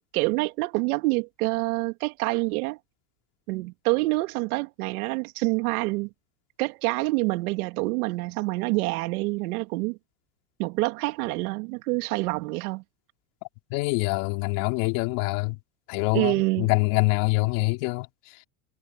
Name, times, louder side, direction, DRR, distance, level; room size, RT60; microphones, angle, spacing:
voice 1, 0.1-2.8 3.5-6.1 6.6-10.0 10.6-12.8 16.1-16.7, right 24 dB, 65° right, 3.1 m, -27 dB
voice 2, 13.7-15.6 15.9-18.1, left 26 dB, 55° left, 4.0 m, -25 dB
supercardioid pair, 150°, 47 cm